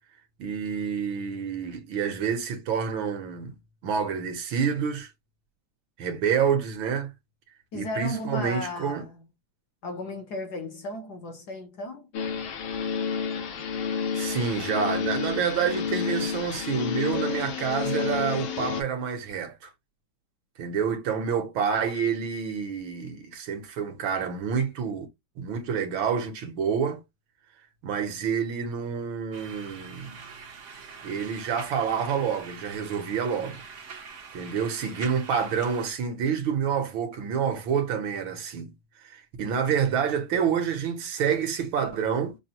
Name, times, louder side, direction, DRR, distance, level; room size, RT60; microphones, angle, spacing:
voice 1, 0.4-3.5 3.8-5.1 6.0-7.1 7.7-9.1 14.1-19.7 20.6-25.1 25.4-27.0 27.8-30.2 31.0-33.6 34.3-38.7 39.0-42.4, right 7 dB, 70° right, 1.7 m, -28 dB
voice 2, 7.7-9.2 9.8-12.1, left 1 dB, 60° left, 1.2 m, -35 dB
sound 1, 12.1-18.8, left 6 dB, 80° left, 1.8 m, -30 dB
sound 2, 29.3-35.9, right 5 dB, 55° right, 0.9 m, -44 dB
6.0 x 2.1 x 2.8 m
omnidirectional pair, 2.3 m